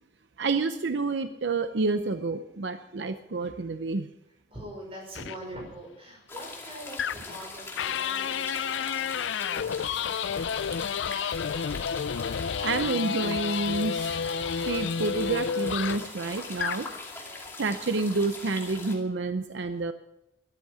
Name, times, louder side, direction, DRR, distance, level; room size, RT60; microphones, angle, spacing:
voice 1, 0.4-4.1 12.6-14.2 14.6-16.9 17.3-19.9, right 3 dB, 75° right, 9 dB, 0.7 m, -29 dB
voice 2, 4.5-10.6, right 1 dB, 30° right, 0 dB, 6.0 m, -44 dB
sound 1, 5.2-5.4 7.0-7.4 7.8-16.1 16.5-16.9, left 7 dB, 80° left, 0.4 m, -30 dB
sound 2, 6.3-18.9, left 3 dB, 15° left, 2.4 m, -42 dB
13.5 x 11.5 x 6.2 m, 0.88 s
head